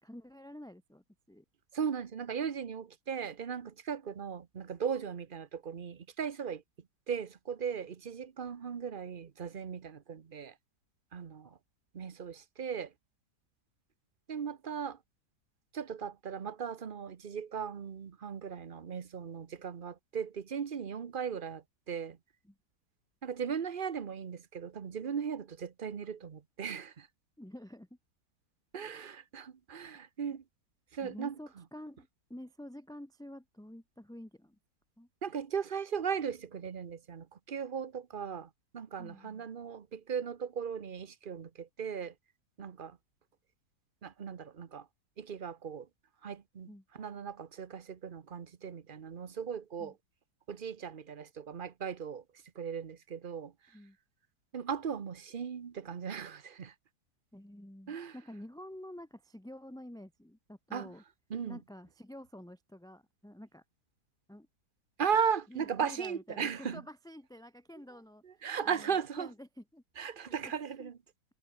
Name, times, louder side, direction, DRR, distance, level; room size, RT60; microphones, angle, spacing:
voice 1, 0.0-1.4 11.4-11.5 22.4-22.6 27.4-28.0 31.0-34.6 35.0-35.1 39.0-39.4 46.6-46.8 49.8-49.9 53.7-54.0 57.3-61.0 61.5-63.6 64.3-64.5 65.5-69.8 70.2-70.5 70.8-70.9, left 1 dB, 5° left, 1.1 m, -49 dB
voice 2, 1.7-6.6 7.1-10.5 11.1-11.6 11.9-12.9 14.3-15.0 15.7-22.2 23.2-27.1 28.7-30.4 30.9-31.3 35.2-42.1 42.6-43.0 44.0-44.9 45.2-45.9 46.2-49.9 50.5-52.2 52.5-53.5 54.5-56.7 57.9-58.1 60.7-60.9 61.3-61.6 65.0-66.8 68.2-69.3 70.0-70.9, right 7 dB, 40° right, 0.9 m, -37 dB
omnidirectional pair, 1.8 m